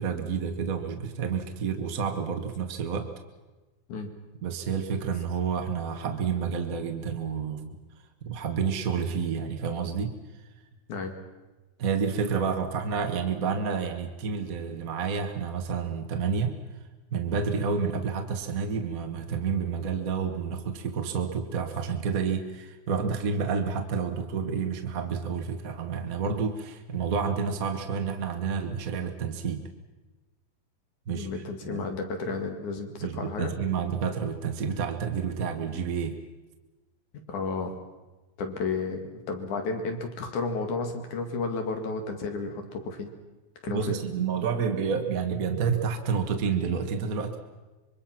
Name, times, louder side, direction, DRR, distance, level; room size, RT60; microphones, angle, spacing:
voice 1, 0.0-3.1 4.4-7.7 8.2-10.1 11.8-16.5 17.1-29.6 31.1-31.8 33.0-36.2 43.7-47.4, right 6 dB, 45° right, 5 dB, 1.1 m, -29 dB
voice 2, 31.1-33.5 37.3-37.7 38.4-39.0 39.3-43.1 43.6-44.0, left 4 dB, 70° left, 5 dB, 3.5 m, -32 dB
25.5 x 23.5 x 5.9 m, 1.1 s
omnidirectional pair, 3.6 m